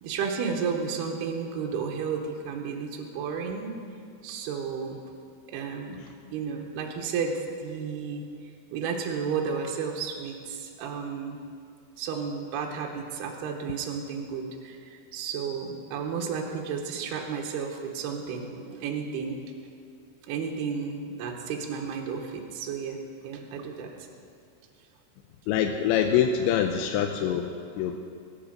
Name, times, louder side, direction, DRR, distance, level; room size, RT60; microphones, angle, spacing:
voice 1, 0.0-3.8 4.2-5.0 5.5-6.0 6.3-8.2 8.7-11.4 12.0-19.4 20.3-23.0 23.2-23.9, right 6 dB, 70° right, 1 dB, 3.0 m, -32 dB
voice 2, 25.5-28.0, left 8 dB, 85° left, 4 dB, 3.0 m, -25 dB
23.5 x 8.7 x 5.2 m, 2.3 s
omnidirectional pair, 5.1 m